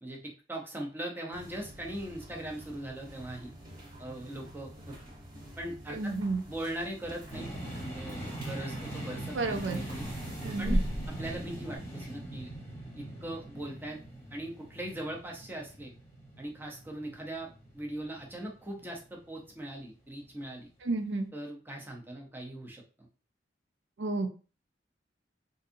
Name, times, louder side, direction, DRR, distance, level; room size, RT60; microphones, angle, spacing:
voice 1, 0.0-3.5 4.0-5.0 5.6-6.1 6.5-7.5 7.8-10.1 10.6-10.8 11.2-12.5 13.0-14.0 14.3-15.9 16.4-20.7 21.3-23.1, right 1 dB, 10° right, 0 dB, 0.7 m, -40 dB
sound 1, 1.3-11.8, equal, 50° right, 1.4 m, -40 dB
voice 2, 5.9-6.4 9.3-9.9 10.4-10.8 20.8-21.3 24.0-24.3, right 3 dB, 80° right, 5 dB, 0.5 m, -31 dB
sound 2, 7.3-19.1, right 1 dB, 15° left, 1.2 m, -42 dB
3.9 x 2.6 x 2.6 m, 0.36 s
head